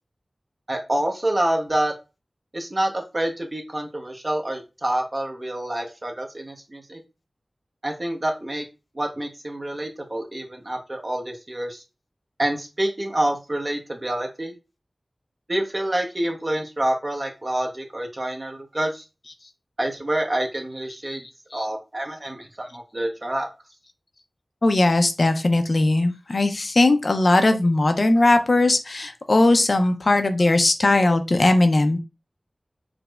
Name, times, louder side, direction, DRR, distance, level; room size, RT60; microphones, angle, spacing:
voice 1, 0.7-1.9 2.5-7.0 7.8-8.7 8.9-11.8 12.4-14.5 15.5-19.0 19.8-21.2 21.5-23.5, right 1 dB, 45° right, 2 dB, 0.8 m, -27 dB
voice 2, 24.6-32.0, left 2 dB, 65° left, 7 dB, 0.4 m, -19 dB
4.8 x 2.0 x 2.3 m, 0.28 s
wide cardioid pair, 40°, 0 cm